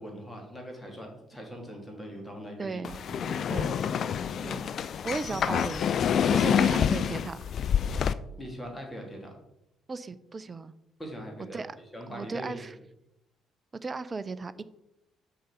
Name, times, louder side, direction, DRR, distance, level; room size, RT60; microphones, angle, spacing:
voice 1, 0.0-3.7 5.3-5.4 6.4-6.8 8.4-9.3 11.0-11.6 11.9-12.6, equal, 15° left, 1 dB, 3.1 m, -41 dB
voice 2, 2.6-3.0 3.5-3.8 4.4-4.7 5.0-5.9 6.3-7.4 9.9-10.7 11.5-11.8 12.1-12.7 13.8-14.5, right 4 dB, 30° right, 15 dB, 0.6 m, -35 dB
sound 1, 2.8-8.1, left 8 dB, 50° left, 0.4 m, -27 dB
6.5 x 5.9 x 6.7 m, 0.86 s
figure-of-eight pair, 45°, 0 cm